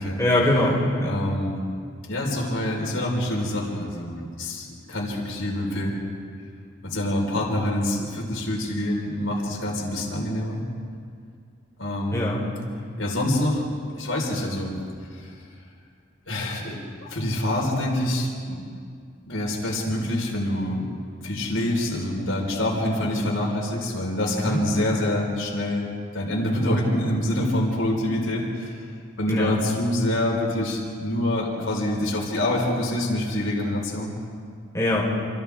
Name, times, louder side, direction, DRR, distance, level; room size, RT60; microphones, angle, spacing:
voice 1, 0.2-1.1 12.1-12.4 24.4-24.6 29.3-29.6 34.7-35.0, left 1 dB, 15° left, -5 dB, 4.2 m, -22 dB
voice 2, 1.0-1.6 2.1-5.9 6.8-10.6 11.8-12.3 13.0-13.7 13.9-14.8 15.1-15.3 16.3-18.6 19.3-20.8 21.2-25.9 26.1-28.8 29.2-34.1, left 1 dB, 85° left, -2 dB, 4.8 m, -26 dB
28.5 x 27.0 x 3.6 m, 2.2 s
head